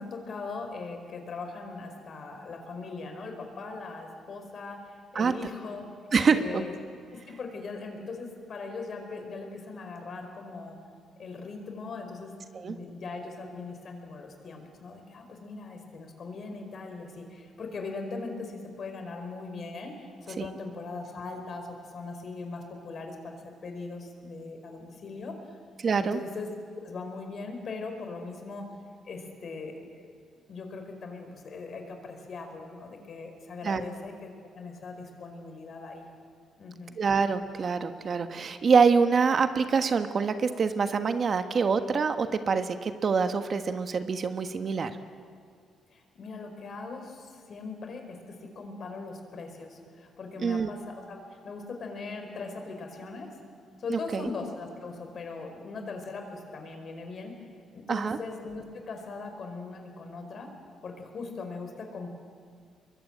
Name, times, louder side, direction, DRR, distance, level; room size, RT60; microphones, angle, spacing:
voice 1, 0.0-5.9 6.3-6.7 7.1-10.8 11.2-12.3 12.6-25.6 25.9-26.5 26.8-28.7 29.0-36.1 36.6-37.0 45.9-53.3 53.8-60.5 60.8-62.1, left 3 dB, 50° left, 4 dB, 4.9 m, -40 dB
voice 2, 6.1-6.6 12.5-12.8 20.4-20.5 25.8-26.2 33.6-33.8 37.0-44.9 50.4-50.7 53.9-54.3 57.9-58.2, right 5 dB, 45° right, 9 dB, 1.3 m, -25 dB
24.5 x 22.0 x 9.0 m, 2.1 s
cardioid pair, 90°, 0 cm